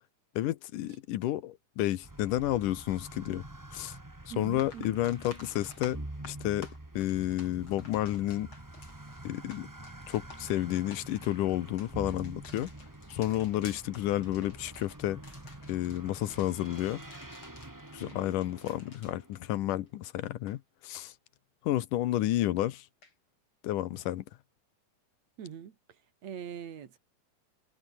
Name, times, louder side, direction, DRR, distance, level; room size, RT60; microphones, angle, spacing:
voice 1, 0.4-3.4 3.7-3.9 4.4-6.0 6.2-6.7 6.9-8.5 9.2-9.7 10.1-12.7 13.1-15.2 15.7-17.0 17.9-21.1 21.6-22.9 23.6-24.2, left 14 dB, 90° left, 2.6 m, -31 dB
sound 1, 2.0-19.9, right 1 dB, 10° right, 0.9 m, -47 dB
sound 2, 3.9-4.0 4.4-20.0 20.3-20.6 23.0-23.1, left 3 dB, 40° left, 6.0 m, -53 dB
voice 2, 4.3-5.0 18.0-18.4 25.4-25.8 26.2-27.0, right 8 dB, 60° right, 3.1 m, -42 dB
omnidirectional pair, 3.6 m